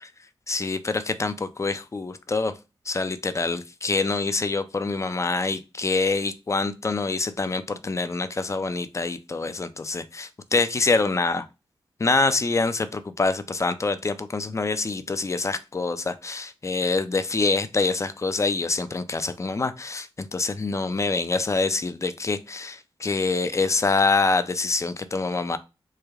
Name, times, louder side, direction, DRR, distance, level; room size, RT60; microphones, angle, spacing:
voice 1, 0.5-2.5 2.9-11.5 12.0-25.6, left 3 dB, 30° left, 12 dB, 0.4 m, -25 dB
3.2 x 2.2 x 3.4 m, 0.27 s
cardioid pair, 60°, 10 cm